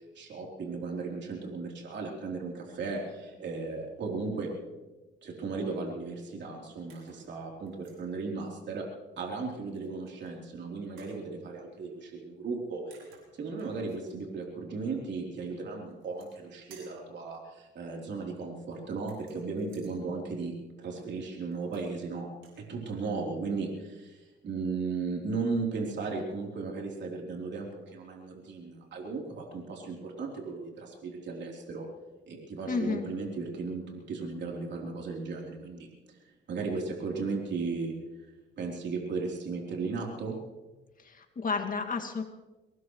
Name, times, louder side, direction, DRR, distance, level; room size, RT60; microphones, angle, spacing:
voice 1, 0.2-4.5 5.2-8.9 9.2-13.0 13.4-22.3 22.6-31.9 32.3-36.2 36.5-37.9 38.6-40.4, right 4 dB, 65° right, -1 dB, 3.7 m, -36 dB
sound 1, 6.9-7.3 7.7-8.0 9.7-10.3 11.0-11.2 12.5-12.6 12.9-14.1 15.9-16.4 16.7-17.1 19.0-19.9 21.5-22.0 22.3-22.6, right 5 dB, 90° right, 6.0 m, -58 dB
voice 2, 32.7-33.1 41.0-42.2, left 4 dB, 45° left, 4 dB, 2.3 m, -31 dB
24.0 x 18.5 x 3.2 m, 1.1 s
cardioid pair, 90°, 20 cm